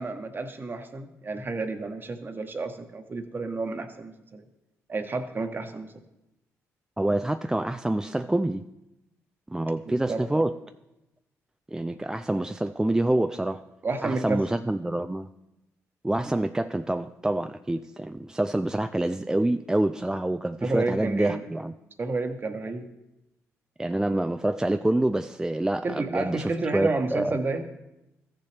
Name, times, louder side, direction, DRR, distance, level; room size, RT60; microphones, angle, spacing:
voice 1, 0.0-4.4 4.9-5.9 9.9-10.4 13.8-14.4 20.6-21.4 22.0-22.9 25.8-27.6, right 3 dB, 35° right, 7 dB, 1.1 m, -30 dB
voice 2, 7.0-8.6 9.5-10.5 11.7-13.6 14.0-15.3 16.0-21.7 23.8-27.4, right 1 dB, 10° right, 9 dB, 0.3 m, -26 dB
14.0 x 7.0 x 3.3 m, 0.92 s
cardioid pair, 70°, 6 cm